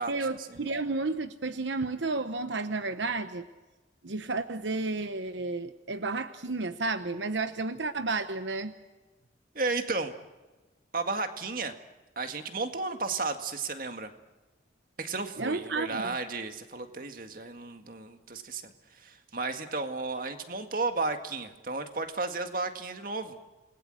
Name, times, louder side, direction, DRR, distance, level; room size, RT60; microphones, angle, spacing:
voice 1, 0.1-3.4 4.0-8.7 15.4-16.2, right 3 dB, 80° right, 10 dB, 1.0 m, -32 dB
voice 2, 9.5-10.1 10.9-11.7 12.2-14.1 15.0-23.4, right 3 dB, 50° right, 7 dB, 1.9 m, -33 dB
28.5 x 20.5 x 7.8 m, 1.2 s
head